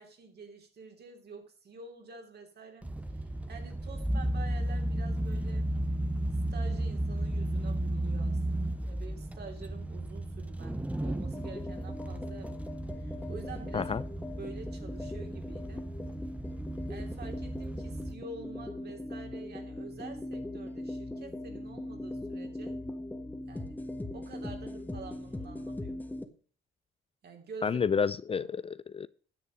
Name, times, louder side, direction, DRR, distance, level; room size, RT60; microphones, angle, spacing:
voice 1, 0.0-5.7 6.5-13.9 14.3-15.9 16.9-22.8 23.5-23.9 24.1-26.0 27.2-27.8 28.3-28.5, right 4 dB, 55° right, 3.2 m, -48 dB
sound 1, 2.8-18.1, right 1 dB, 5° right, 0.9 m, -34 dB
sound 2, 11.3-26.3, left 1 dB, 10° left, 1.5 m, -40 dB
voice 2, 27.6-29.1, left 6 dB, 30° left, 0.4 m, -30 dB
10.0 x 7.4 x 5.2 m
cardioid pair, 90°, 20 cm